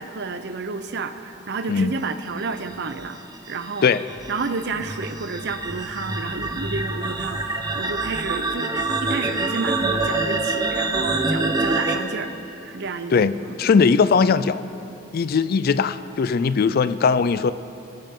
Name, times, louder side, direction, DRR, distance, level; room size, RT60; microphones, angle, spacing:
voice 1, 0.0-3.2 3.5-3.9 4.3-12.3 12.6-13.9, right 4 dB, 60° right, 10 dB, 0.7 m, -30 dB
sound 1, 2.7-12.0, right 3 dB, 20° right, 0.9 m, -26 dB
voice 2, 13.1-14.6 15.1-17.5, left 5 dB, 50° left, 15 dB, 0.4 m, -19 dB
24.5 x 8.9 x 3.8 m, 2.9 s
head